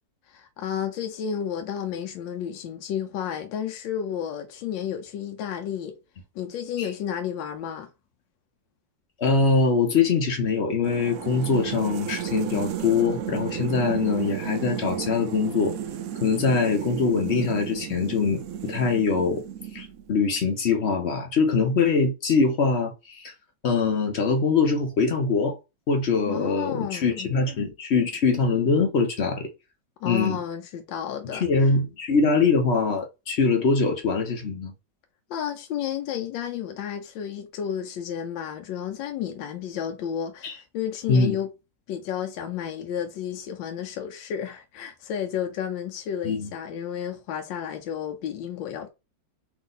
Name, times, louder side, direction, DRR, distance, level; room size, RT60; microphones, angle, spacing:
voice 1, 0.3-6.0 6.3-7.9 26.3-27.3 30.0-31.4 35.3-41.5 41.9-48.9, left 9 dB, 90° left, 1.4 m, -32 dB
voice 2, 9.2-15.7 16.2-19.4 19.7-23.3 23.6-25.6 25.9-29.5 30.0-30.4 31.3-34.7 40.4-40.5 41.1-41.4 46.2-46.5, left 4 dB, 55° left, 0.7 m, -23 dB
sound 1, 10.8-20.2, right 9 dB, 75° right, 0.8 m, -33 dB
3.6 x 2.7 x 3.8 m
omnidirectional pair, 2.0 m